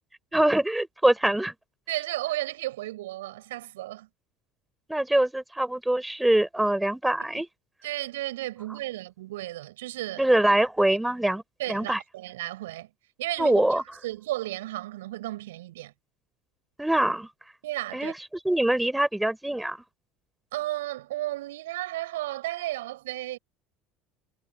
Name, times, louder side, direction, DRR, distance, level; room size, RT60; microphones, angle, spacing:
voice 1, 0.3-1.5 4.9-7.5 10.2-11.4 11.7-12.0 13.4-13.8 16.8-17.3 17.9-18.1 18.4-19.8, right 1 dB, 5° right, 5.0 m, -23 dB
voice 2, 1.9-4.1 7.3-7.4 7.8-10.3 11.6-12.9 13.2-13.6 14.0-15.9 17.6-18.1 20.5-23.4, right 16 dB, 70° right, 6.5 m, -33 dB
figure-of-eight pair, 65°, 0 cm